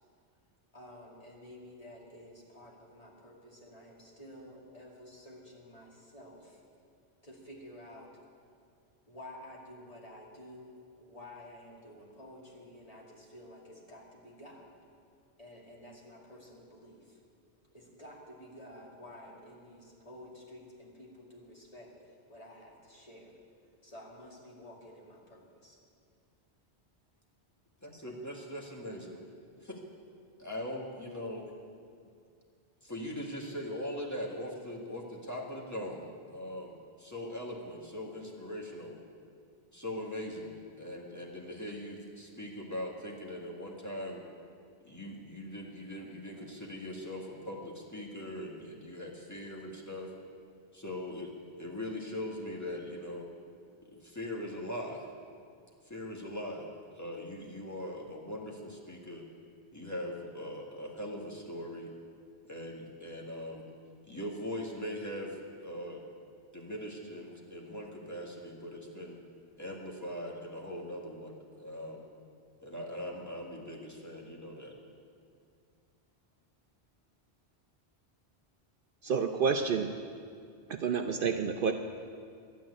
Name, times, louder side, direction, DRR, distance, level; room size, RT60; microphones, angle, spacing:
voice 1, 0.7-6.6 7.2-8.2 9.1-14.8 15.4-17.2 17.7-23.3 23.8-25.8, left 1 dB, 35° left, -3 dB, 2.5 m, -51 dB
voice 2, 27.8-29.2 29.6-29.8 30.4-31.5 32.8-39.0 39.7-44.3 44.8-50.1 50.7-53.3 53.8-55.1 55.9-56.7 57.0-59.3 59.7-61.9 62.4-63.6 64.1-66.0 66.5-69.2 69.6-72.1 72.6-74.8, left 1 dB, 15° left, -2 dB, 1.8 m, -41 dB
voice 3, 79.0-80.0 80.7-81.7, right 6 dB, 60° right, 6 dB, 0.7 m, -29 dB
12.0 x 8.8 x 9.6 m, 2.3 s
omnidirectional pair, 1.1 m